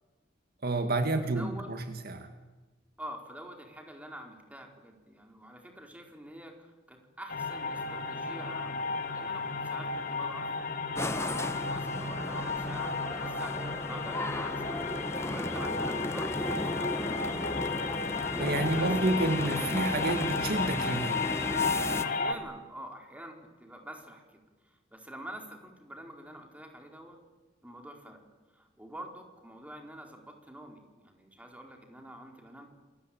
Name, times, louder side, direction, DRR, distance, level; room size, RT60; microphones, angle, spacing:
voice 1, 0.6-2.3 18.4-21.2, right 2 dB, 55° right, 7 dB, 2.0 m, -29 dB
voice 2, 1.2-1.7 3.0-10.5 10.8-14.9 15.3-17.7 18.8-19.6 22.0-23.3 23.6-27.2 27.6-28.2 28.5-32.7, right 1 dB, 10° right, 2 dB, 4.7 m, -46 dB
sound 1, 7.3-22.3, left 4 dB, 50° left, 2.5 m, -34 dB
sound 2, 11.0-22.0, left 1 dB, 15° left, 1.3 m, -35 dB
28.5 x 22.5 x 8.8 m, 1.2 s
head